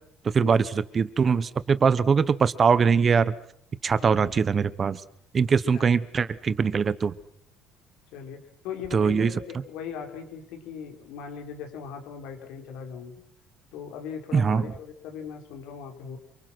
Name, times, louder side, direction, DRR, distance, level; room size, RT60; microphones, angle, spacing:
voice 1, 0.3-0.6 0.9-3.3 3.8-5.0 5.3-7.1 8.9-9.3 14.3-14.7, right 6 dB, 30° right, 16 dB, 1.0 m, -22 dB
voice 2, 4.0-4.4 5.6-5.9 8.1-13.1 13.7-16.2, left 7 dB, 80° left, 3 dB, 5.2 m, -39 dB
27.5 x 25.0 x 6.2 m, 0.69 s
cardioid pair, 145°, 0 cm